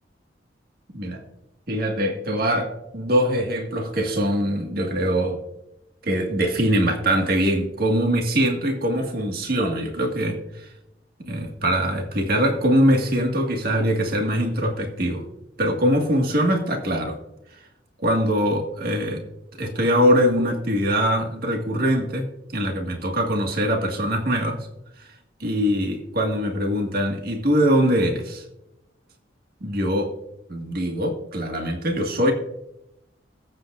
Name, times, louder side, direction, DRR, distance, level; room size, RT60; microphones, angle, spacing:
voice 1, 1.7-5.4 6.0-10.7 11.3-15.2 15.6-17.2 18.0-19.2 19.6-22.3 22.5-24.6 25.0-25.1 25.4-28.4 29.6-30.1 30.5-32.3, equal, 55° right, 2 dB, 1.8 m, -22 dB
21.0 x 8.1 x 2.5 m, 0.86 s
head